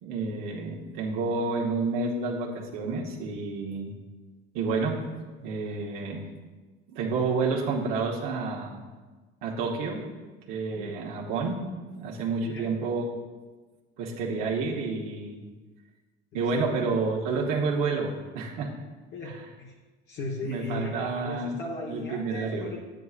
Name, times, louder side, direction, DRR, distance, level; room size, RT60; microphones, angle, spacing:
voice 1, 0.0-3.9 4.5-5.0 5.4-6.2 6.9-8.8 9.4-10.0 10.5-11.6 11.9-13.0 14.0-15.4 16.3-18.7 19.2-19.4 20.4-21.6 21.9-22.7, right 4 dB, 80° right, -2 dB, 1.1 m, -29 dB
voice 2, 12.4-12.7 16.3-16.7 19.1-19.7 20.1-22.8, left 2 dB, 60° left, -3 dB, 1.2 m, -37 dB
9.6 x 8.9 x 2.4 m, 1.3 s
cardioid pair, 120°, 21 cm